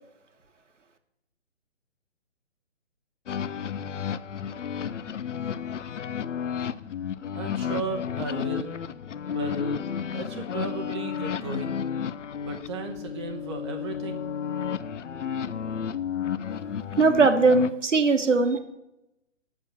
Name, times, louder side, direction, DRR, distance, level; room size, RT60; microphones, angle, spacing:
sound 1, 3.3-17.7, left 8 dB, 70° left, 0.5 m, -32 dB
voice 1, 7.3-8.7 9.3-9.9 10.1-11.8 12.4-14.2, right 3 dB, 20° right, 2 dB, 0.7 m, -35 dB
voice 2, 17.0-18.6, right 4 dB, 70° right, 7 dB, 1.2 m, -20 dB
7.4 x 5.2 x 7.0 m, 0.87 s
figure-of-eight pair, 140°, 37 cm